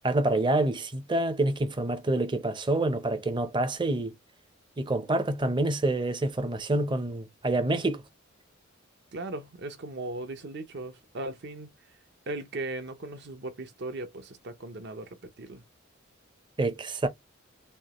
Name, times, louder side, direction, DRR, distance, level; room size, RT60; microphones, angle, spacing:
voice 1, 0.0-4.1 4.8-8.0 16.6-17.1, right 2 dB, 25° right, 0.6 m, -27 dB
voice 2, 9.1-11.7 12.3-15.6, right 2 dB, 55° right, 0.8 m, -38 dB
5.3 x 2.0 x 3.0 m
head